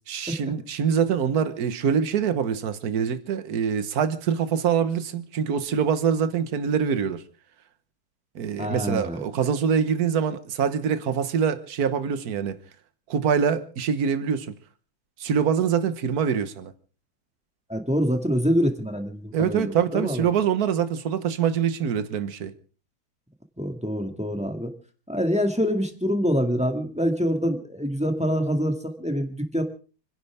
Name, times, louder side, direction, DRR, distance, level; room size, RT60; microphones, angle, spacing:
voice 1, 0.1-7.2 8.3-12.6 13.1-14.5 15.2-16.7 19.3-22.5, right 7 dB, 55° right, 1.6 m, -24 dB
voice 2, 8.6-9.2 17.7-20.2 23.6-24.7 25.1-29.6, equal, 5° right, 1.8 m, -25 dB
29.5 x 11.0 x 3.5 m
omnidirectional pair, 2.2 m